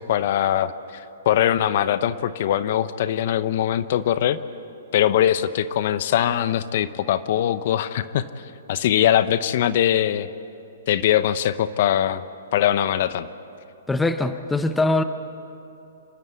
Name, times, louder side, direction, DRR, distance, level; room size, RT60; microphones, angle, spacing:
voice 1, 0.0-4.4 4.9-10.3 10.9-12.2 12.5-13.3, left 11 dB, 50° left, 14 dB, 0.8 m, -22 dB
voice 2, 13.9-15.0, left 2 dB, 5° left, 10 dB, 0.7 m, -22 dB
27.5 x 13.0 x 8.3 m, 2.8 s
hypercardioid pair, 150°, 0 cm